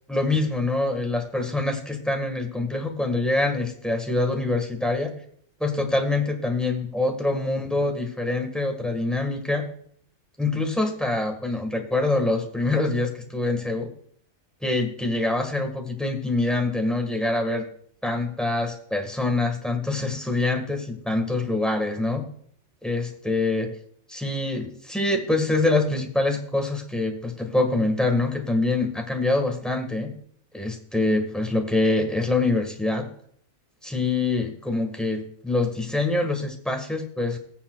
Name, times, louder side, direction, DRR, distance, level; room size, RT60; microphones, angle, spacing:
voice 1, 0.1-5.1 5.6-9.6 10.4-13.9 14.6-17.6 18.0-22.2 22.8-23.7 24.1-30.1 30.5-33.1 33.8-37.4, left 2 dB, ahead, 3 dB, 1.4 m, -25 dB
20.5 x 7.2 x 2.3 m, 0.62 s
omnidirectional pair, 1.2 m